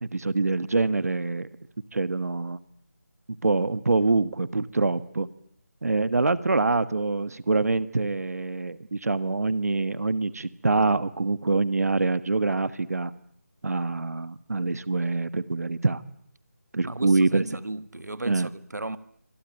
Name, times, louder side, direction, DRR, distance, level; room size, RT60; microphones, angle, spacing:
voice 1, 0.0-1.5 1.9-2.6 3.4-5.3 5.8-13.1 13.6-16.0 16.7-17.4 18.3-18.5, right 3 dB, 65° right, 1.5 m, -25 dB
voice 2, 16.8-19.0, right 2 dB, 90° right, 1.7 m, -35 dB
26.0 x 22.5 x 9.3 m
figure-of-eight pair, 170°, 9 cm